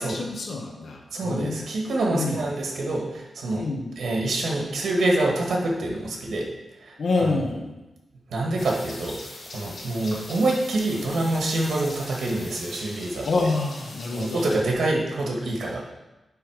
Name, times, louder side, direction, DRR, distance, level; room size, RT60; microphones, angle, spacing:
voice 1, 0.0-1.7 2.1-2.4 3.5-3.9 7.0-7.7 13.2-14.5, left 3 dB, 65° left, 1 dB, 1.3 m, -27 dB
voice 2, 1.1-3.6 4.0-6.5 6.8-6.9 8.3-9.2 9.5-13.3 14.1-15.8, right 2 dB, 85° right, -1 dB, 1.7 m, -26 dB
sound 1, 8.6-14.6, left 2 dB, 85° left, 2.7 m, -41 dB
9.6 x 3.5 x 4.8 m, 1.0 s
wide cardioid pair, 155°, 0 cm